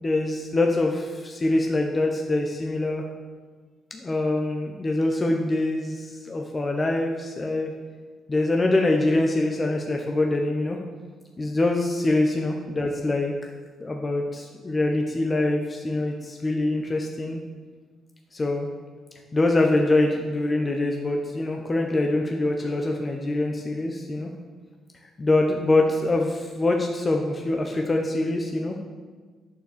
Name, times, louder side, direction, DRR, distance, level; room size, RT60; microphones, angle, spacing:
voice 1, 0.0-3.0 3.9-7.7 8.3-10.8 11.4-13.3 13.8-17.4 18.3-18.7 19.3-24.3 25.2-28.8, left 2 dB, 25° left, 2 dB, 1.1 m, -24 dB
9.0 x 6.9 x 6.8 m, 1.4 s
cardioid pair, 90°, 0 cm